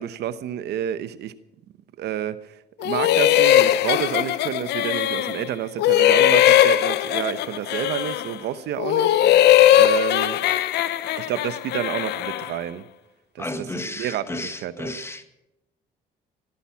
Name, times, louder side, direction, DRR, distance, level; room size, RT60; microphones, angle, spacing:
voice 1, 0.0-1.3 2.0-10.4 11.1-12.9 13.3-13.5 13.7-15.0, right 11 dB, 75° right, 0.9 m, -30 dB
sound 1, 2.8-5.5 5.8-8.4 8.8-12.6, left 12 dB, 80° left, 0.8 m, -19 dB
voice 2, 13.4-15.2, left 2 dB, 15° left, 1.7 m, -32 dB
18.0 x 13.0 x 5.9 m
cardioid pair, 110°, 17 cm